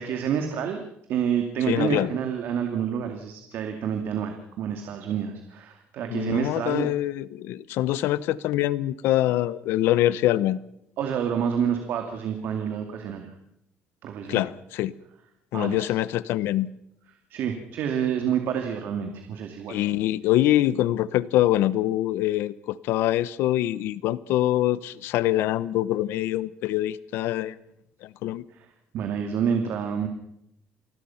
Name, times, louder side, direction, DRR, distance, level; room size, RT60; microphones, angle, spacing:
voice 1, 0.0-6.9 11.0-13.3 14.0-14.5 15.5-15.9 17.3-19.8 28.5-28.7 28.9-30.1, right 8 dB, 60° right, 5 dB, 2.4 m, -28 dB
voice 2, 1.7-2.1 6.1-10.6 14.3-14.9 15.5-16.7 19.7-27.6 28.0-28.4, left 14 dB, 80° left, 18 dB, 0.9 m, -24 dB
28.0 x 20.0 x 5.8 m, 0.79 s
cardioid pair, 165°, 4 cm